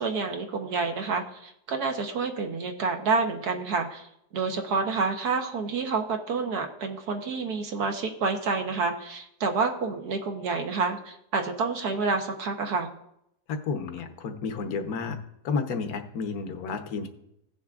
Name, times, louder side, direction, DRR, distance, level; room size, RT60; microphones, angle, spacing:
voice 1, 0.0-4.1 4.3-12.9, right 4 dB, 70° right, 4 dB, 1.4 m, -28 dB
voice 2, 13.6-15.2 15.4-17.1, left 5 dB, 65° left, 6 dB, 1.3 m, -31 dB
16.5 x 7.1 x 2.4 m, 0.80 s
omnidirectional pair, 1.8 m